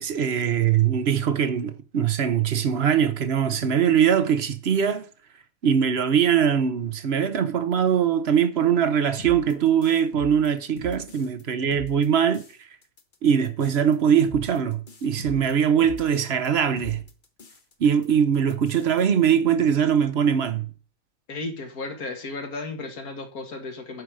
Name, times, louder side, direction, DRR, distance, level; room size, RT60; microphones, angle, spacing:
voice 1, 0.0-5.0 5.6-12.7 13.2-17.0 17.8-20.7, right 8 dB, 50° right, 0.9 m, -22 dB
sound 1, 9.2-11.4 11.7-12.5 12.8-16.5 16.8-17.7 18.0-18.1 18.3-19.0, left 2 dB, 35° left, 1.2 m, -43 dB
voice 2, 21.3-24.0, left 3 dB, 75° left, 2.2 m, -34 dB
9.5 x 5.0 x 6.2 m
omnidirectional pair, 1.5 m